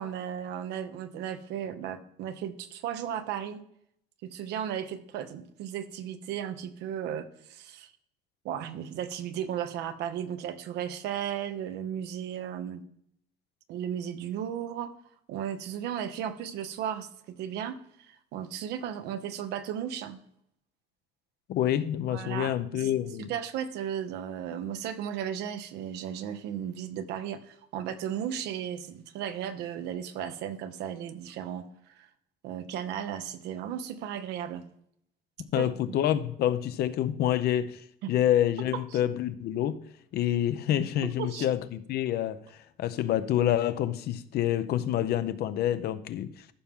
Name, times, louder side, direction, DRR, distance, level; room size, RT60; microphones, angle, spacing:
voice 1, 0.0-3.6 4.2-7.9 8.4-12.8 13.7-14.9 15.3-17.1 17.4-20.2 22.1-22.9 23.2-32.1 32.4-34.7 35.6-35.7 38.0-38.1 38.7-39.0 41.2-41.5, right 9 dB, 85° right, 1.0 m, -35 dB
voice 2, 21.5-23.3 35.5-37.8 38.1-39.8 40.1-46.5, left 11 dB, 70° left, 0.7 m, -27 dB
14.0 x 5.9 x 3.7 m
cardioid pair, 110°, 17 cm